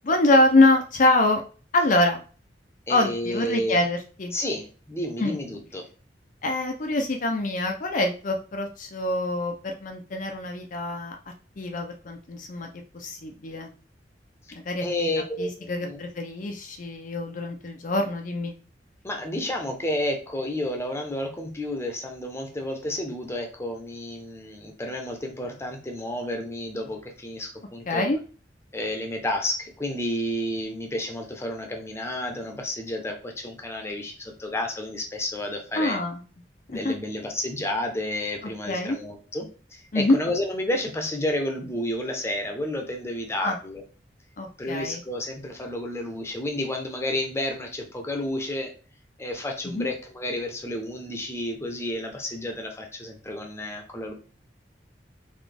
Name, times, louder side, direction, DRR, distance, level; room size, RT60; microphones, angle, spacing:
voice 1, 0.0-1.4 1.7-2.2 2.9-4.4 5.2-5.4 6.4-11.2 11.6-12.7 12.9-13.7 14.7-14.8 15.4-18.5 27.9-28.2 35.7-36.2 36.7-37.0 38.7-39.0 39.9-40.2 43.4-43.6 44.4-45.0 49.6-49.9, left 2 dB, 45° left, 3 dB, 0.6 m, -24 dB
voice 2, 2.9-3.8 4.3-5.8 14.8-15.5 15.8-16.0 19.0-28.0 28.7-36.0 36.7-43.8 44.6-48.7 49.2-54.1, left 1 dB, 15° left, 2 dB, 0.9 m, -31 dB
4.1 x 3.5 x 3.4 m, 0.37 s
head